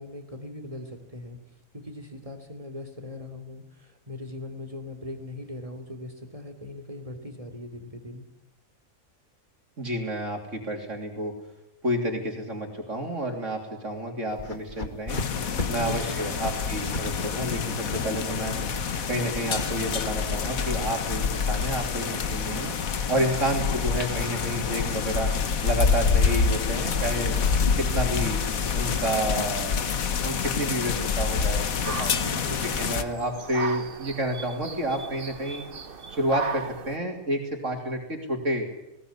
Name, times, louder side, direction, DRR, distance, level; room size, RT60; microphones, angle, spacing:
voice 1, 0.0-1.4 1.7-8.2 15.6-16.3 23.1-23.4 32.1-32.7, left 2 dB, 25° right, 6 dB, 3.1 m, -39 dB
voice 2, 9.8-11.3 11.8-15.2 15.7-18.6 19.1-22.7 23.1-25.3 25.6-27.3 27.8-28.4 28.7-29.8 30.2-32.1 32.8-35.6 36.1-38.7, right 1 dB, 60° right, 2 dB, 3.6 m, -30 dB
sound 1, 14.3-17.1 17.4-19.7 20.3-27.8 28.0-28.5 28.8-29.0 29.3-31.1, left 3 dB, 35° left, 2.1 m, -38 dB
sound 2, 15.1-33.0, left 6 dB, 85° left, 1.7 m, -27 dB
sound 3, 31.8-37.0, right 5 dB, 45° right, 1.3 m, -37 dB
20.0 x 18.5 x 9.7 m, 0.93 s
omnidirectional pair, 1.4 m